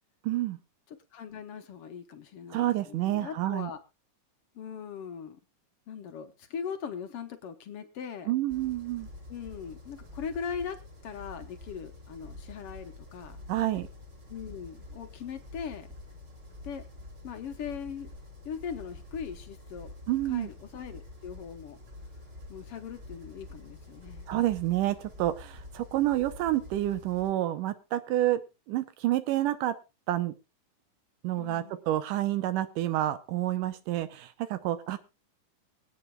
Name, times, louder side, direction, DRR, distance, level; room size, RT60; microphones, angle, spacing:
voice 1, 0.2-0.6 2.5-3.7 8.3-9.1 13.5-13.9 20.1-20.5 24.3-28.4 28.7-29.8 30.1-30.3 31.2-35.0, right 14 dB, 80° right, 11 dB, 2.4 m, -29 dB
voice 2, 1.1-3.8 4.6-5.4 5.9-8.3 9.3-13.4 14.3-15.9 16.6-16.8 17.2-18.1 18.5-19.9 20.3-21.8 22.5-24.3 31.4-31.8, left 7 dB, 60° left, 7 dB, 1.6 m, -40 dB
sound 1, 8.5-27.3, left 2 dB, 35° right, 3.5 m, -47 dB
24.5 x 9.0 x 2.3 m, 0.27 s
omnidirectional pair, 3.8 m